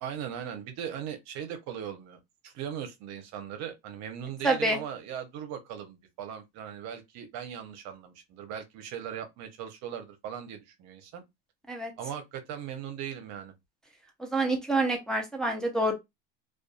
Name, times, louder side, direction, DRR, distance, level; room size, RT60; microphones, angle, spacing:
voice 1, 0.0-11.2 12.0-13.5, right 9 dB, 60° right, 0.8 m, -39 dB
voice 2, 4.4-4.8 11.7-11.9 14.2-15.9, right 2 dB, ahead, 0.6 m, -27 dB
2.5 x 2.4 x 2.4 m
supercardioid pair, 115°, 31 cm